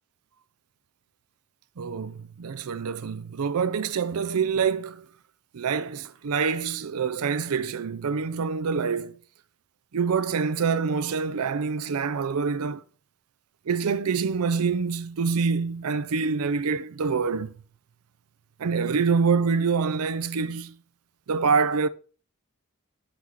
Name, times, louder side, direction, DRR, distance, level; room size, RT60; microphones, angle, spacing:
voice 1, 1.8-5.1 5.5-9.2 9.9-12.8 13.7-17.5 18.6-20.7 21.3-21.9, right 5 dB, 85° right, 0.5 m, -26 dB
6.0 x 5.7 x 4.7 m
head